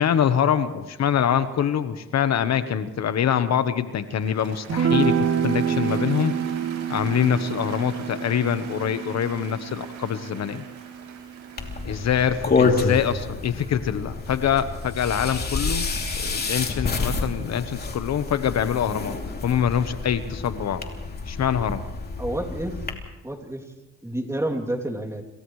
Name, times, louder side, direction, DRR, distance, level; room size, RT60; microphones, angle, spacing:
voice 1, 0.0-6.3 6.9-10.6 11.8-15.9 16.1-19.2 19.4-20.8 21.3-21.8, left 9 dB, 60° left, 11 dB, 1.1 m, -24 dB
Cheering / Applause, 4.0-16.2, right 6 dB, 80° right, 6.7 m, -44 dB
sound 1, 4.7-11.2, right 8 dB, 50° right, 2.6 m, -27 dB
sound 2, 11.6-22.9, left 4 dB, 30° left, 3.0 m, -28 dB
voice 2, 22.2-22.8 23.2-23.6 24.0-25.2, right 1 dB, 10° right, 2 dB, 2.9 m, -29 dB
29.0 x 28.0 x 3.2 m, 1.0 s
cardioid pair, 90°, 30 cm